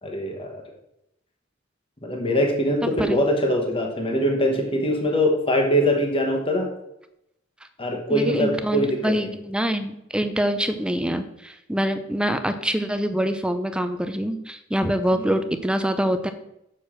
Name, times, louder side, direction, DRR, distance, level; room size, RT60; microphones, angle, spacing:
voice 1, 0.0-0.6 2.0-6.7 7.8-9.3 15.1-15.4, equal, 25° left, 2 dB, 1.1 m, -23 dB
voice 2, 8.1-16.3, equal, 5° right, 9 dB, 0.5 m, -25 dB
6.6 x 4.5 x 6.2 m, 0.82 s
head